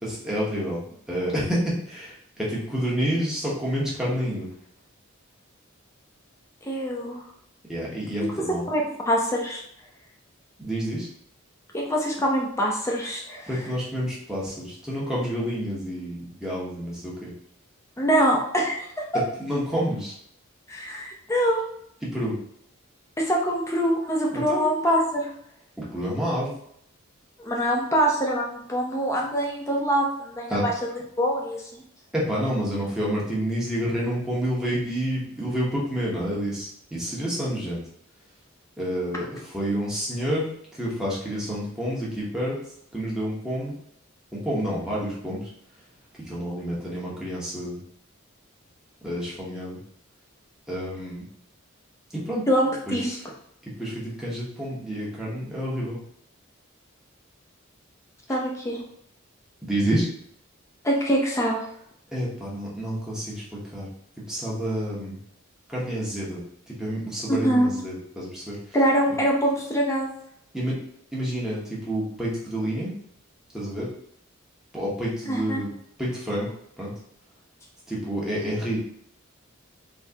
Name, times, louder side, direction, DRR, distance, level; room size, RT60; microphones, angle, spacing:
voice 1, 0.0-0.8 1.1-4.5 7.7-8.6 10.6-11.1 13.5-17.3 19.4-20.1 22.1-22.3 24.3-24.7 25.8-26.5 30.5-30.7 32.1-37.8 38.8-40.5 40.7-42.6 42.9-43.7 44.3-45.4 46.3-47.8 49.0-49.8 50.7-51.2 52.1-52.4 52.9-53.0 53.8-56.0 59.6-60.1 62.1-63.9 64.3-65.2 65.7-66.4 66.7-68.6 70.5-70.8 71.1-72.9 73.5-73.9 74.7-75.7 76.0-76.5 76.8-76.9 77.9-78.8, equal, 5° right, -7 dB, 1.0 m, -29 dB
voice 2, 6.7-7.2 8.2-8.3 8.7-9.6 11.7-13.5 18.0-19.2 20.7-21.6 23.2-25.3 27.4-30.7 31.2-31.8 52.5-53.2 58.3-58.8 60.8-61.6 67.3-67.7 68.7-70.1 75.3-75.6, equal, 15° left, -1 dB, 0.6 m, -24 dB
3.5 x 3.0 x 2.8 m, 0.71 s
head